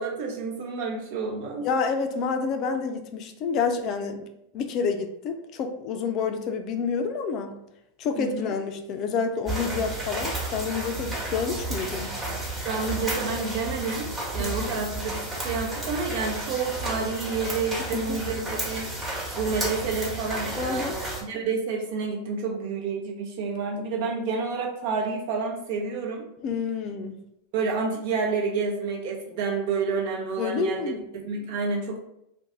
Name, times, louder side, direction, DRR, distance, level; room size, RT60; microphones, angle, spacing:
voice 1, 0.0-1.7 8.2-8.5 12.6-18.9 19.4-26.2 27.5-30.9 31.2-32.0, right 4 dB, 65° right, -1 dB, 0.8 m, -29 dB
voice 2, 1.6-7.6 8.0-12.1 14.4-14.8 18.0-18.2 20.6-21.0 26.4-27.2 30.4-31.1, left 5 dB, 45° left, 6 dB, 0.4 m, -29 dB
sound 1, 9.5-21.2, right 1 dB, 15° right, 1.1 m, -32 dB
2.6 x 2.2 x 4.0 m, 0.81 s
hypercardioid pair, 105°, 0 cm